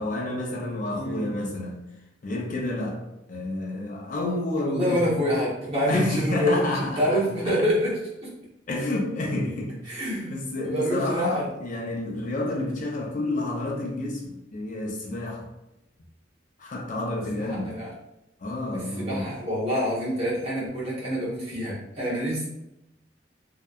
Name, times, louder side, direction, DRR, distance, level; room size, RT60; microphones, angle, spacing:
voice 1, 0.0-1.8 2.2-3.0 3.3-5.1 5.9-7.2 8.7-15.5 16.6-17.8 18.4-19.3, left 2 dB, 45° left, -1 dB, 0.4 m, -29 dB
voice 2, 4.6-8.0 9.9-10.3 10.6-11.4 17.4-17.9 19.0-22.5, equal, 35° right, -7 dB, 0.9 m, -26 dB
2.7 x 2.1 x 2.3 m, 0.90 s
head